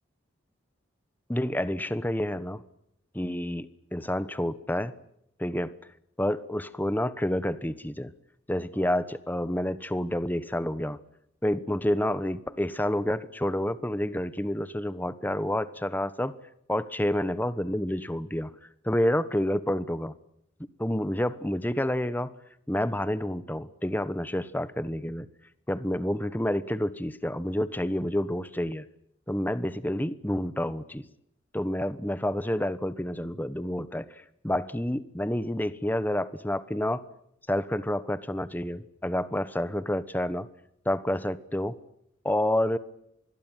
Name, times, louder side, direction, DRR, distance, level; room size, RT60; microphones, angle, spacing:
voice 1, 1.3-2.6 3.1-4.9 5.4-5.7 6.2-8.1 8.5-11.0 11.4-16.3 16.7-18.5 18.8-20.1 20.8-22.3 22.7-25.3 25.7-28.9 29.3-31.0 31.5-37.0 37.5-40.5 40.8-41.8 42.2-42.8, left 1 dB, 10° left, 15 dB, 1.1 m, -29 dB
26.0 x 21.0 x 9.2 m, 0.76 s
head